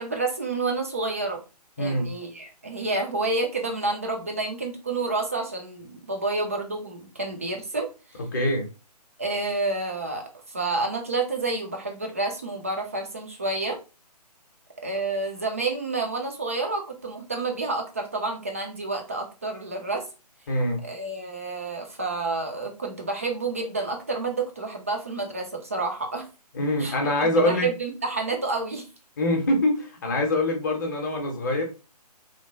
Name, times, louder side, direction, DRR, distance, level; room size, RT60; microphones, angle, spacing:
voice 1, 0.0-1.4 1.8-7.9 9.2-13.8 14.8-20.0 20.8-26.3 26.8-28.9, right 3 dB, 20° right, 0.3 m, -29 dB
voice 2, 1.8-2.1 8.3-8.7 20.5-20.8 26.5-27.7 29.2-31.6, left 1 dB, 30° left, 0.7 m, -24 dB
2.8 x 2.0 x 2.6 m
figure-of-eight pair, 140°, 21 cm